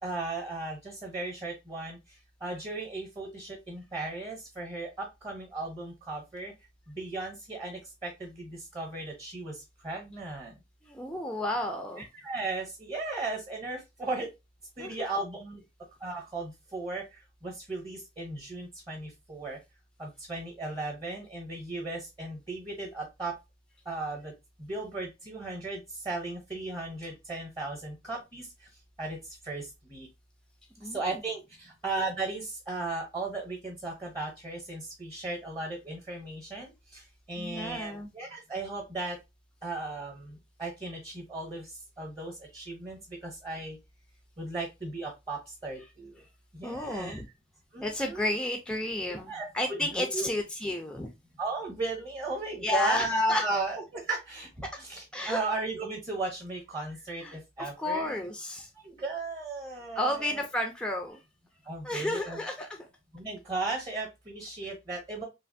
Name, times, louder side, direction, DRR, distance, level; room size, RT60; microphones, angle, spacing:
voice 1, 0.0-2.0 2.4-6.5 6.9-10.6 12.2-14.3 14.8-15.6 16.0-17.0 17.4-19.6 20.0-23.3 23.9-24.3 24.6-28.5 29.0-29.2 29.4-30.1 30.9-37.0 37.3-39.2 39.6-41.7 42.0-43.8 44.4-46.1 46.5-47.2 47.7-48.3 49.3-49.5 49.8-50.3 51.4-58.1 58.8-60.4 61.7-62.4 63.1-65.2, right 2 dB, 25° right, 1 dB, 0.8 m, -36 dB
voice 2, 10.8-12.1 14.8-15.0 30.8-31.1 37.4-38.1 46.6-47.2 47.8-51.1 52.6-53.6 55.1-55.4 57.2-58.7 60.0-61.2 61.8-62.9, left 1 dB, 5° left, 4 dB, 0.3 m, -32 dB
3.3 x 2.4 x 2.5 m, 0.23 s
head